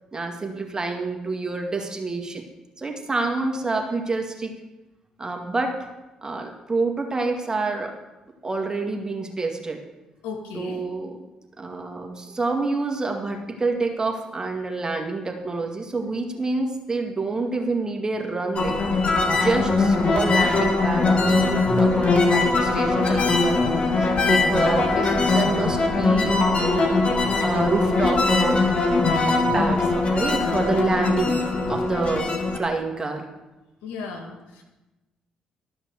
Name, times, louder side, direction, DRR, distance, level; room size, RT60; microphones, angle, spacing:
voice 1, 0.1-2.4 2.8-4.5 5.2-5.8 6.2-7.9 8.4-9.8 10.5-11.1 11.6-18.8 19.3-23.6 24.0-26.7 27.4-28.6 29.3-31.4 31.7-33.3, right 3 dB, 25° right, 2 dB, 2.1 m, -27 dB
voice 2, 10.2-10.8 33.8-34.6, left 5 dB, 80° left, 2 dB, 1.8 m, -35 dB
sound 1, 18.5-32.6, left 3 dB, 45° left, 1.8 m, -21 dB
12.5 x 5.8 x 7.0 m, 1.1 s
hypercardioid pair, 50°, 3 cm